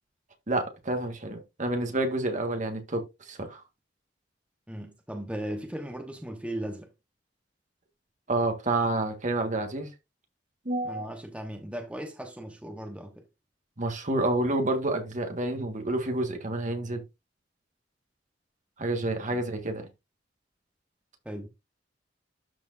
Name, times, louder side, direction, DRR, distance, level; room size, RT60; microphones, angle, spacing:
voice 1, 0.5-3.6 8.3-9.9 10.6-11.0 13.8-17.0 18.8-19.9, right 2 dB, 45° right, 1.7 m, -29 dB
voice 2, 4.7-6.9 10.8-13.2 21.2-21.5, right 1 dB, 5° right, 1.1 m, -37 dB
12.5 x 4.4 x 2.6 m
head